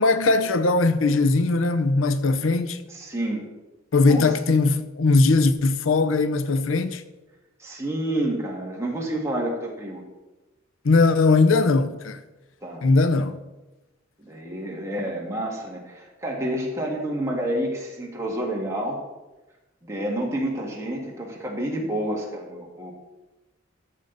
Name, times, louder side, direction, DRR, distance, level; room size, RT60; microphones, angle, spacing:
voice 1, 0.0-2.8 3.9-7.0 10.8-12.2 12.8-13.3, left 3 dB, 85° left, 0.6 m, -20 dB
voice 2, 2.9-3.4 4.1-4.3 7.6-10.0 12.6-12.9 14.2-19.0 19.8-22.9, right 1 dB, 15° right, 1.9 m, -29 dB
13.5 x 6.5 x 4.0 m
head